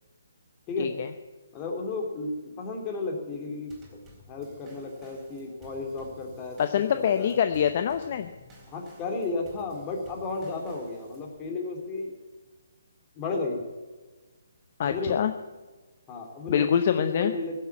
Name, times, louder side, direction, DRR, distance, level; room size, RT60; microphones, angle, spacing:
voice 1, 0.8-1.1 6.6-8.3 14.8-15.3 16.5-17.3, left 8 dB, 45° left, 9 dB, 0.8 m, -25 dB
voice 2, 1.5-3.7 4.3-6.6 6.9-7.4 8.7-12.1 13.1-13.6 14.8-15.2 16.1-17.6, left 3 dB, 25° left, 2 dB, 3.1 m, -33 dB
Drum kit / Snare drum / Bass drum, 3.7-11.4, equal, 15° right, 4.0 m, -53 dB
16.0 x 7.7 x 8.5 m, 1.3 s
figure-of-eight pair, 145°, 0 cm